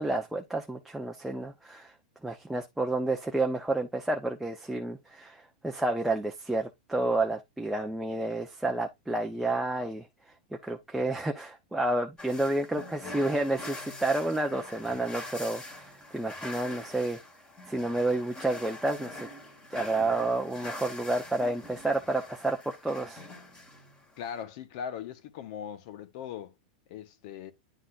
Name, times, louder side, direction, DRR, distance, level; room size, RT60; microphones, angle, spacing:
voice 1, 0.0-1.9 2.2-10.1 10.6-17.2 17.7-19.3 19.7-23.2, right 2 dB, 5° right, 0.7 m, -30 dB
sound 1, 12.2-24.4, left 2 dB, 20° left, 2.4 m, -44 dB
voice 2, 24.2-26.5 26.9-27.5, left 8 dB, 55° left, 1.2 m, -39 dB
10.0 x 4.0 x 2.5 m
hypercardioid pair, 125°, 5 cm